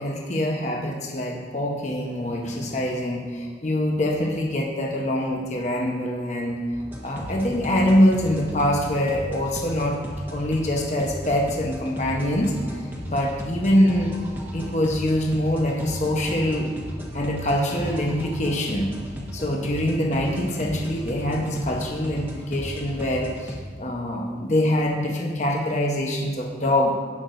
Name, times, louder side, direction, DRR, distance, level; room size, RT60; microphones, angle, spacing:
voice 1, 0.0-6.6 7.0-10.0 10.3-12.5 13.0-14.2 14.5-16.7 17.1-18.9 19.3-26.9, left 1 dB, 40° left, 0 dB, 0.9 m, -24 dB
sound 1, 6.7-23.5, equal, 10° right, 1.3 m, -35 dB
17.0 x 6.1 x 2.6 m, 1.6 s
head